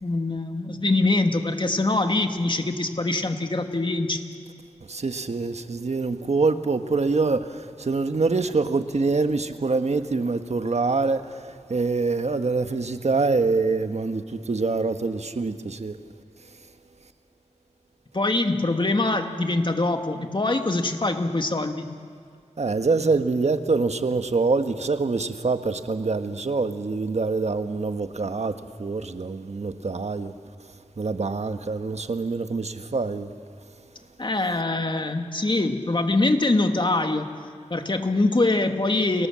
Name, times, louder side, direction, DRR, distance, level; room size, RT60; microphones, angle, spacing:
voice 1, 0.0-4.2 18.1-21.9 34.2-37.3 37.7-39.3, left 2 dB, 40° left, 2.3 m, -23 dB
voice 2, 4.9-11.4 11.7-16.0 22.6-30.3 31.0-33.3, right 3 dB, 65° right, 1.4 m, -25 dB
30.0 x 19.0 x 7.6 m
cardioid pair, 40°, 12 cm